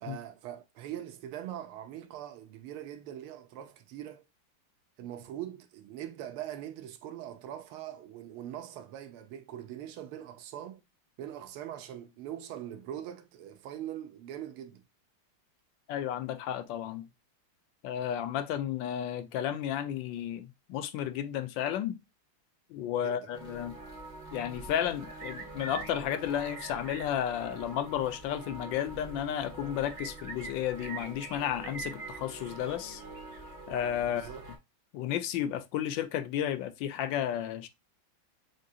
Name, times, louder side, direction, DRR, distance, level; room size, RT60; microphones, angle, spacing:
voice 1, 0.0-4.3 5.0-10.8 11.2-14.8 23.0-23.3 34.0-34.5, right 11 dB, 90° right, 1.6 m, -42 dB
voice 2, 15.9-17.1 17.8-22.0 22.7-23.8 24.3-33.0 33.7-34.3 34.9-37.7, left 10 dB, 75° left, 1.2 m, -33 dB
sound 1, 23.3-34.6, right 3 dB, 25° right, 1.0 m, -44 dB
7.3 x 2.7 x 2.3 m
omnidirectional pair, 2.3 m